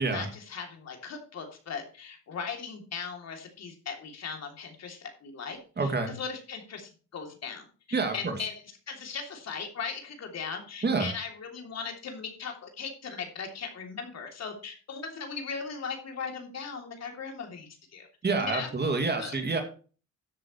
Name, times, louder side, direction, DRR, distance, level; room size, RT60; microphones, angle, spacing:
voice 1, 0.0-8.5 8.9-18.1 18.4-19.4, left 5 dB, 60° left, 3 dB, 3.2 m, -38 dB
voice 2, 5.8-6.1 7.9-8.4 10.8-11.1 18.2-19.6, right 3 dB, 35° right, 5 dB, 2.5 m, -28 dB
13.5 x 7.7 x 3.2 m, 0.37 s
cardioid pair, 90°, 30 cm